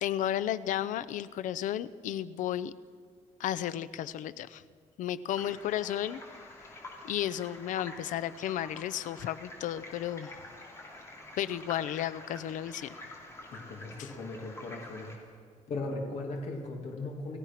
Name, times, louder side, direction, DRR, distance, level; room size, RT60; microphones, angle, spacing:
voice 1, 0.0-2.7 3.4-4.6 5.0-6.2 7.0-10.3 11.4-13.0 14.0-14.1, left 11 dB, 80° left, 16 dB, 0.7 m, -33 dB
sound 1, 5.3-15.2, left 2 dB, 20° left, 3.2 m, -48 dB
voice 2, 13.5-15.1 15.7-17.4, left 2 dB, 55° left, 1 dB, 2.4 m, -38 dB
29.0 x 15.0 x 5.9 m, 2.1 s
cardioid pair, 170°, 13 cm